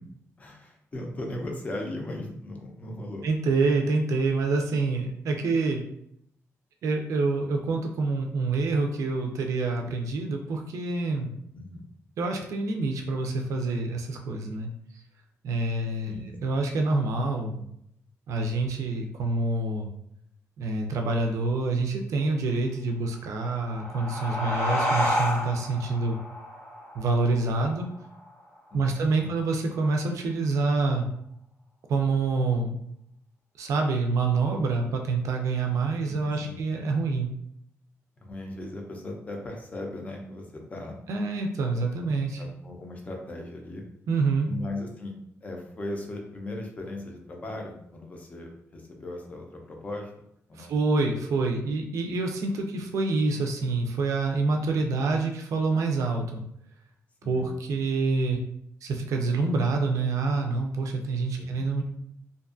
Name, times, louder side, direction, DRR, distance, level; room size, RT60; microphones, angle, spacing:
voice 1, 0.4-3.3 11.5-11.8 16.0-16.5 28.7-29.3 36.1-36.6 38.2-40.9 42.4-43.8 44.5-45.1 45.4-50.2 50.5-50.7 57.2-57.5 61.4-61.6, left 1 dB, 25° left, 1 dB, 0.5 m, -38 dB
voice 2, 3.2-5.8 6.8-11.3 12.2-14.7 15.4-17.7 18.3-19.9 20.6-26.2 26.9-27.9 28.7-31.1 31.9-32.8 33.6-37.3 41.1-42.4 44.1-44.5 50.6-56.4 57.3-58.4 58.8-61.8, right 3 dB, 70° right, 3 dB, 0.4 m, -27 dB
sound 1, 23.4-28.6, equal, 85° left, 1.1 m, -30 dB
2.5 x 2.3 x 2.4 m, 0.74 s
wide cardioid pair, 140°, 6 cm